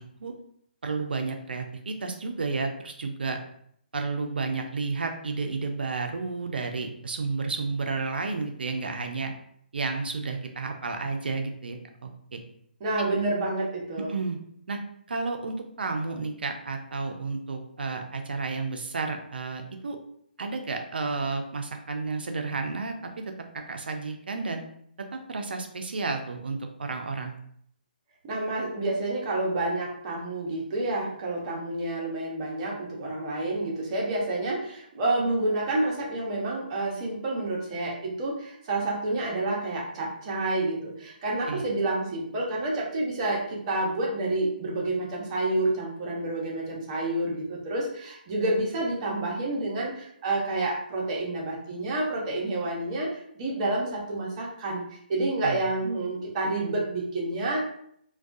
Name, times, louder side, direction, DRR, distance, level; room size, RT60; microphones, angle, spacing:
voice 1, 0.8-3.4 3.9-9.3 9.7-12.4 14.1-14.4 14.7-14.8 15.1-20.0 20.4-23.1 23.5-24.6 25.1-27.4 41.5-41.6 55.4-55.6, right 4 dB, 75° right, 4 dB, 0.5 m, -31 dB
voice 2, 12.8-14.1 28.2-57.6, right 2 dB, 35° right, -3 dB, 0.8 m, -29 dB
2.3 x 2.2 x 2.5 m, 0.68 s
figure-of-eight pair, 140°, 5 cm